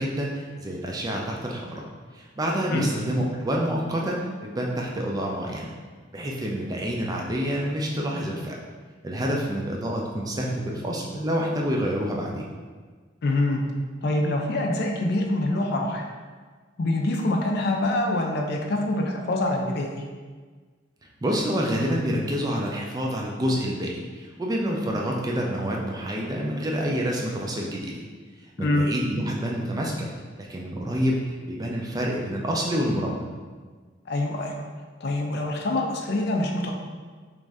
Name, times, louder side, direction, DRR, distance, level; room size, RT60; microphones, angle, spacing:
voice 1, 0.0-1.8 2.1-5.7 6.1-8.6 9.0-12.4 21.2-28.0 28.6-30.1 30.4-31.2 31.5-33.3, equal, 20° right, -1 dB, 0.4 m, -27 dB
voice 2, 13.2-13.6 14.0-16.0 16.8-20.0 28.6-28.9 34.1-34.6 35.0-36.7, left 2 dB, 55° left, 2 dB, 0.4 m, -25 dB
3.1 x 2.5 x 3.4 m, 1.5 s
head